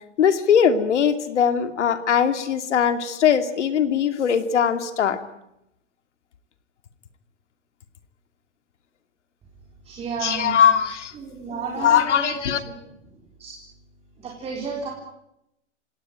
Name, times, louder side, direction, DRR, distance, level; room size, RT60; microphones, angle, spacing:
voice 1, 0.2-5.2 10.2-11.1 11.8-12.6, left 8 dB, 75° left, 9 dB, 2.7 m, -20 dB
voice 2, 9.8-10.6 11.1-12.4 12.6-12.8 13.4-13.6 14.2-14.9, right 5 dB, 15° right, 0 dB, 4.0 m, -32 dB
28.0 x 18.0 x 9.1 m, 0.85 s
hypercardioid pair, 145°, 36 cm